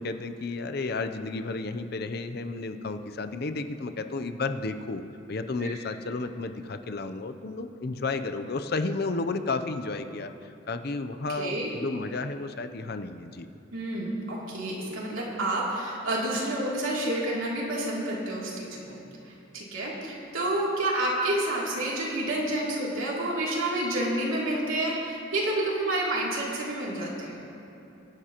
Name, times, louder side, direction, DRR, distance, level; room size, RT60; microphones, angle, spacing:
voice 1, 0.0-5.0 5.3-10.3 10.7-13.5, left 3 dB, 50° left, 8 dB, 0.6 m, -32 dB
voice 2, 11.3-11.7 13.7-19.0 19.3-27.4, right 1 dB, 80° right, -5 dB, 2.8 m, -29 dB
23.5 x 11.0 x 3.0 m, 2.8 s
head